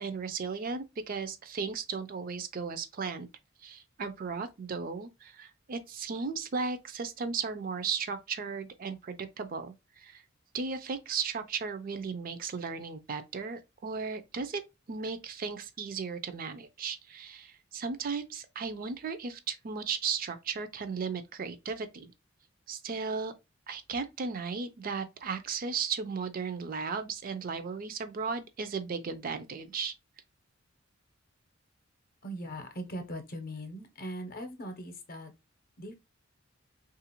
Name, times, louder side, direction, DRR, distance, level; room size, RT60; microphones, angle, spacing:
voice 1, 0.0-3.3 3.6-10.2 10.5-14.6 14.9-22.1 22.7-23.3 23.7-29.9, right 5 dB, 45° right, 0.4 m, -35 dB
voice 2, 32.2-35.3 35.8-35.9, equal, 45° left, 0.7 m, -40 dB
3.3 x 2.4 x 2.8 m
head